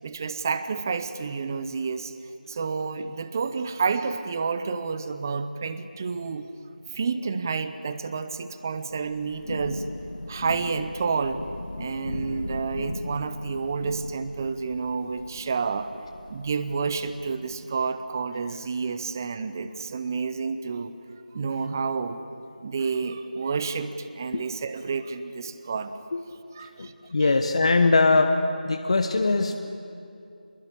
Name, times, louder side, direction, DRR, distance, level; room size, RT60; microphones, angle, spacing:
voice 1, 0.0-2.1 2.5-6.5 6.9-9.8 10.3-11.4 11.8-15.9 16.3-20.9 21.3-22.2 22.6-25.9 26.5-26.9, right 5 dB, 20° right, 12 dB, 0.8 m, -29 dB
Thunder / Rain, 8.9-17.5, left 1 dB, 65° left, 1.8 m, -38 dB
voice 2, 26.8-28.3 28.6-29.5, left 3 dB, 40° left, 5 dB, 1.1 m, -21 dB
26.5 x 21.5 x 8.6 m, 2.7 s
figure-of-eight pair, 170°, 5 cm